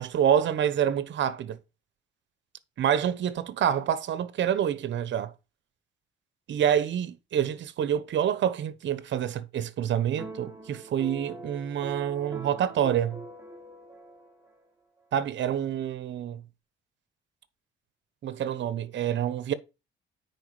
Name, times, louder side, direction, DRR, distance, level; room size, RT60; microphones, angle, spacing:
voice 1, 0.0-1.6 2.8-5.3 6.5-13.2 15.1-16.4 18.2-19.5, right 9 dB, 65° right, 1.0 m, -27 dB
sound 1, 10.2-14.6, right 2 dB, 15° right, 2.0 m, -43 dB
9.5 x 4.8 x 4.8 m
cardioid pair, 90°, 20 cm